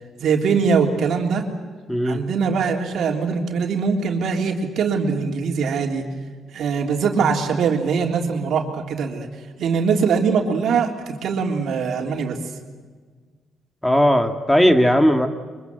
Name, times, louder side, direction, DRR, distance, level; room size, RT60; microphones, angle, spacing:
voice 1, 0.2-1.4 2.0-6.0 6.5-9.3 9.6-12.4, right 5 dB, 70° right, 3 dB, 3.5 m, -22 dB
voice 2, 1.9-2.2 13.8-15.3, equal, 5° left, 7 dB, 2.0 m, -17 dB
24.5 x 23.5 x 8.0 m, 1.5 s
cardioid pair, 90°, 0 cm